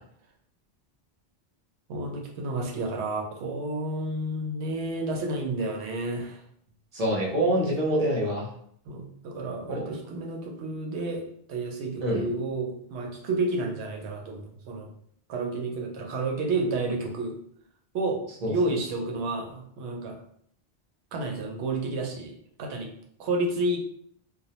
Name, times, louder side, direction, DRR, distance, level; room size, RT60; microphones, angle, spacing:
voice 1, 1.9-6.4 8.9-11.2 11.5-14.9 15.3-17.3 17.9-18.2 18.5-20.2 21.1-22.3 22.6-22.9 23.2-23.8, right 2 dB, 85° right, 1 dB, 0.8 m, -30 dB
voice 2, 6.9-8.5 9.7-9.8 12.0-12.2 18.4-18.5, right 1 dB, 45° right, -3 dB, 0.6 m, -25 dB
2.2 x 2.0 x 2.7 m, 0.67 s
omnidirectional pair, 1.1 m